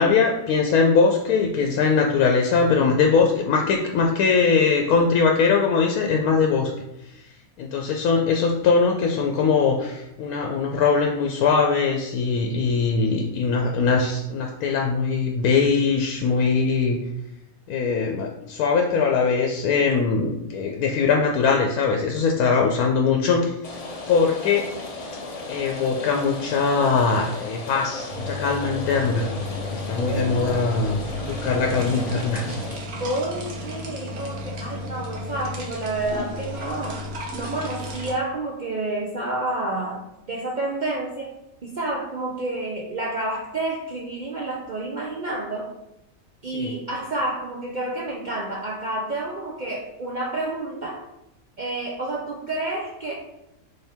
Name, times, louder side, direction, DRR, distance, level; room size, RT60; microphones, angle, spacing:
voice 1, 0.0-6.7 7.1-7.2 7.6-17.0 17.7-23.5 24.1-24.6 25.5-29.3 29.7-32.5 46.5-46.7, left 5 dB, 85° left, 1 dB, 1.1 m, -21 dB
Rain, 23.6-32.8, left 2 dB, 55° left, 0.4 m, -35 dB
sound 1, 28.1-38.1, left 1 dB, 80° right, 1.3 m, -33 dB
voice 2, 30.0-30.6 33.0-37.0 37.3-40.0 40.3-41.3 41.6-45.7 46.4-51.0 51.6-53.1, right 2 dB, 60° right, -2 dB, 0.4 m, -29 dB
4.3 x 3.5 x 3.4 m, 0.87 s
omnidirectional pair, 1.5 m